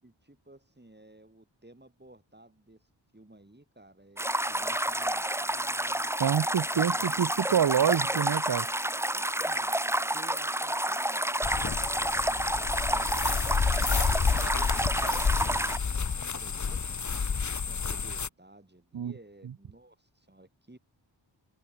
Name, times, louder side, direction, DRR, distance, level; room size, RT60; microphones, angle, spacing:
voice 1, 0.0-2.9 3.1-6.1 6.7-7.8 9.1-9.7 10.1-17.2 17.7-20.8, right 1 dB, 20° right, 6.7 m, -54 dB
sound 1, 4.2-15.8, right 1 dB, 5° right, 0.9 m, -29 dB
voice 2, 6.2-8.7 18.9-19.1, right 8 dB, 55° right, 0.7 m, -26 dB
sound 2, 11.4-18.3, left 5 dB, 40° left, 0.9 m, -29 dB
cardioid pair, 45°, 45 cm